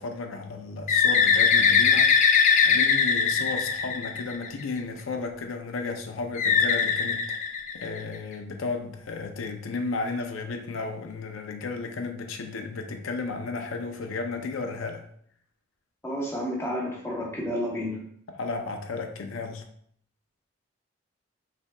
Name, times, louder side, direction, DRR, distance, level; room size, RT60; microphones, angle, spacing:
voice 1, 0.0-2.1 2.6-15.0 18.3-19.7, left 3 dB, 90° left, 0.5 m, -34 dB
Bird, 0.9-4.6 6.4-8.2, left 6 dB, 40° left, 0.4 m, -21 dB
voice 2, 16.0-18.0, equal, 15° left, 0.9 m, -30 dB
5.5 x 3.4 x 2.3 m
head